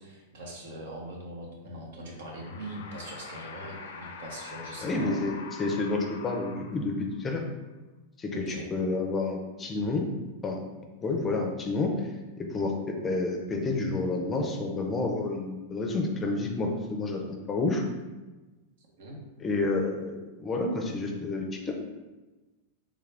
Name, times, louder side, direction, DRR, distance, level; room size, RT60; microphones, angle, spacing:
voice 1, 0.0-5.3 8.3-8.7 18.8-19.2, right 1 dB, 75° right, -1 dB, 0.9 m, -42 dB
sound 1, 2.1-7.2, left 5 dB, 85° left, 0.4 m, -44 dB
voice 2, 4.8-7.4 8.2-10.0 10.4-10.6 11.0-12.1 12.4-17.2 17.5-17.8 19.4-21.7, left 3 dB, 20° left, 2 dB, 0.4 m, -29 dB
3.5 x 2.4 x 3.3 m, 1.2 s
supercardioid pair, 145°, 0 cm